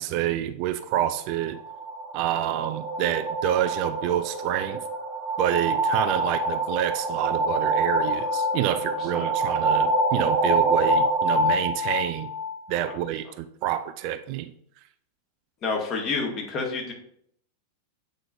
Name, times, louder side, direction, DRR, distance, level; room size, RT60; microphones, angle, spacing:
voice 1, 0.0-1.6 2.1-4.8 5.4-12.3 12.7-14.5, right 12 dB, 45° right, 11 dB, 0.4 m, -28 dB
sound 1, 1.3-13.0, right 1 dB, ahead, 1.0 m, -26 dB
voice 2, 15.6-16.9, left 4 dB, 30° left, 0 dB, 1.9 m, -28 dB
7.6 x 5.0 x 2.7 m, 0.66 s
figure-of-eight pair, 90°, 0 cm